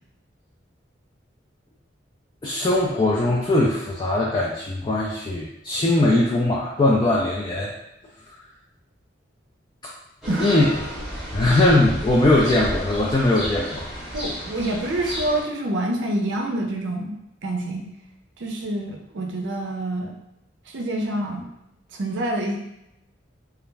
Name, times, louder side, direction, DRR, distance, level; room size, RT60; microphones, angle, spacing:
voice 1, 2.4-7.7 9.8-9.9 10.4-10.6 11.3-13.9, left 2 dB, 25° left, -5 dB, 0.3 m, -20 dB
sound 1, 10.2-15.4, equal, ahead, 0.8 m, -32 dB
voice 2, 10.3-10.6 14.1-17.1 17.4-17.9 18.4-20.1 20.7-21.5 21.9-22.6, right 1 dB, 70° right, 1 dB, 0.5 m, -27 dB
2.3 x 2.1 x 3.2 m, 0.84 s
head